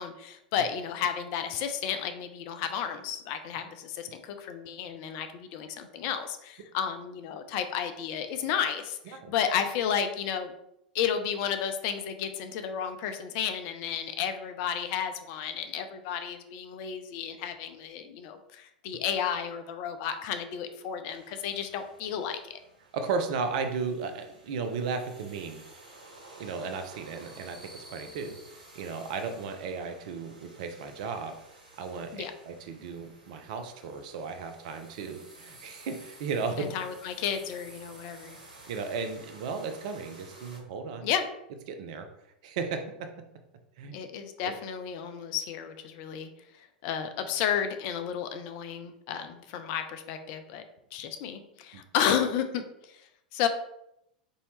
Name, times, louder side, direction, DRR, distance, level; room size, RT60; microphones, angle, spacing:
voice 1, 0.0-10.5 10.9-22.6 32.1-32.3 36.6-38.4 41.0-41.2 43.9-46.3 46.8-50.6 50.9-53.0 53.3-53.5, left 8 dB, 45° left, 8 dB, 0.4 m, -32 dB
sound 1, 21.1-40.6, right 2 dB, 75° right, 1.2 m, -52 dB
voice 2, 22.9-25.6 26.4-31.3 31.8-36.7 38.7-41.1 41.7-42.1 42.4-43.1 43.8-44.0 51.7-51.8, right 5 dB, 55° right, 7 dB, 0.6 m, -35 dB
4.1 x 2.7 x 3.1 m, 0.80 s
figure-of-eight pair, 90°, 5 cm